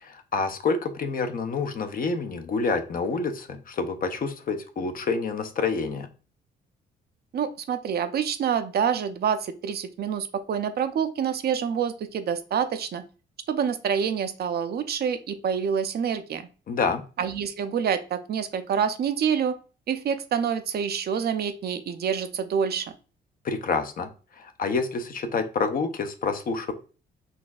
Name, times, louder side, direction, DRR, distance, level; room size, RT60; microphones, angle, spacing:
voice 1, 0.0-6.1 16.7-17.0 23.4-24.1 24.4-26.7, left 4 dB, 45° left, 8 dB, 0.5 m, -28 dB
voice 2, 7.3-13.0 13.5-16.5 17.2-19.6 19.9-22.9, right 7 dB, 55° right, 9 dB, 0.4 m, -27 dB
4.1 x 2.6 x 2.3 m, 0.35 s
cardioid pair, 90°, 20 cm